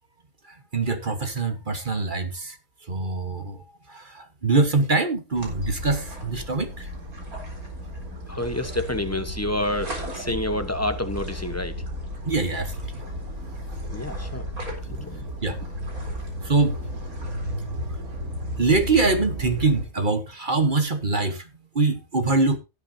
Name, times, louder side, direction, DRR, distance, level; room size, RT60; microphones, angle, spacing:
voice 1, 0.7-2.5 2.9-3.6 3.9-6.9 12.2-12.7 15.4-15.6 16.4-16.8 18.6-21.4 21.7-22.6, right 3 dB, 35° right, 1.3 m, -23 dB
sound 1, 5.3-19.8, equal, 75° right, 4.2 m, -34 dB
voice 2, 8.3-11.7 13.9-14.4 14.9-15.2, left 1 dB, 10° left, 0.9 m, -28 dB
17.0 x 8.4 x 2.8 m
omnidirectional pair, 1.5 m